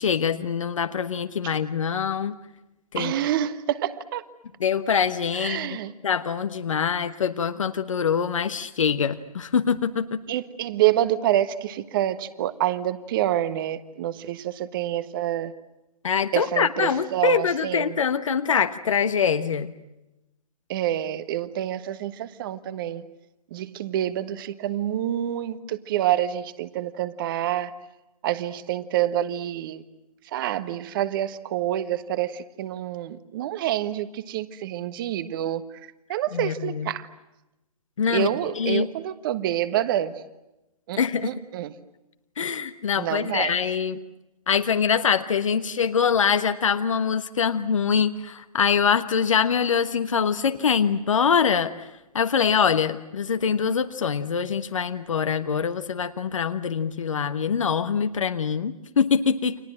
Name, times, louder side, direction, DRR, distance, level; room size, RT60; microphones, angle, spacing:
voice 1, 0.0-2.4 2.9-3.1 4.6-5.7 6.0-10.2 16.0-19.7 36.3-36.9 38.0-38.3 38.6-38.9 41.0-41.3 42.4-44.0 44.5-51.7 52.1-59.6, left 7 dB, 60° left, 9 dB, 1.3 m, -24 dB
voice 2, 2.9-4.2 5.3-5.9 10.3-15.5 16.3-18.0 20.7-23.0 23.5-27.7 28.2-29.8 30.2-37.1 38.1-40.1 40.9-41.7 42.9-43.5, right 12 dB, 35° right, 14 dB, 1.5 m, -27 dB
29.5 x 25.5 x 7.7 m, 0.97 s
figure-of-eight pair, 120°, 19 cm